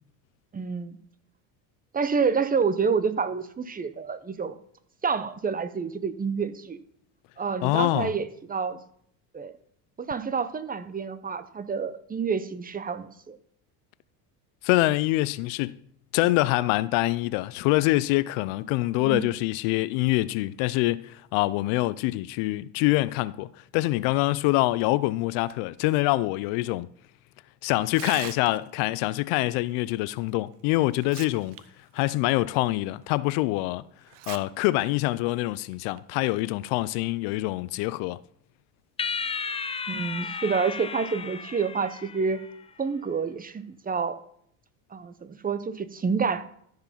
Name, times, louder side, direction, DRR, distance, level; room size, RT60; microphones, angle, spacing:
voice 1, 0.5-1.0 1.9-4.6 5.0-6.8 7.4-8.8 9.3-9.5 10.0-13.4 19.0-19.3 39.9-42.4 42.8-44.2 44.9-46.4, right 5 dB, 20° right, 0.7 m, -28 dB
voice 2, 7.6-8.1 14.6-15.8 16.1-26.9 27.6-31.6 31.9-33.8 34.3-38.2, left 19 dB, 75° left, 0.6 m, -25 dB
Tearing, 27.8-28.8 30.3-30.4 30.9-31.6 32.0-32.1 32.7-32.8 34.1-34.4 34.8-34.9 35.7-36.0, right 14 dB, 60° right, 0.8 m, -40 dB
sound 1, 39.0-42.5, left 5 dB, 15° left, 0.4 m, -34 dB
13.5 x 4.8 x 5.8 m
supercardioid pair, 105°, 47 cm